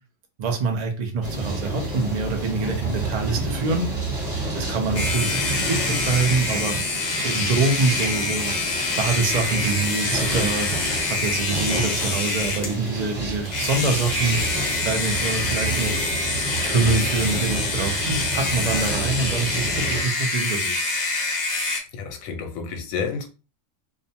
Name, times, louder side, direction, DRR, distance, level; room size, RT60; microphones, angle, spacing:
voice 1, 0.4-4.0 4.5-8.5 9.0-10.7 11.1-16.0 16.6-20.8, right 3 dB, 50° right, 0.5 m, -25 dB
sound 1, 1.2-20.0, right 2 dB, 30° right, 1.1 m, -30 dB
sound 2, 4.9-12.8 13.5-21.8, left 3 dB, 45° left, 0.6 m, -26 dB
voice 2, 21.9-23.3, left 5 dB, 85° left, 1.0 m, -30 dB
2.5 x 2.1 x 2.7 m
omnidirectional pair, 1.4 m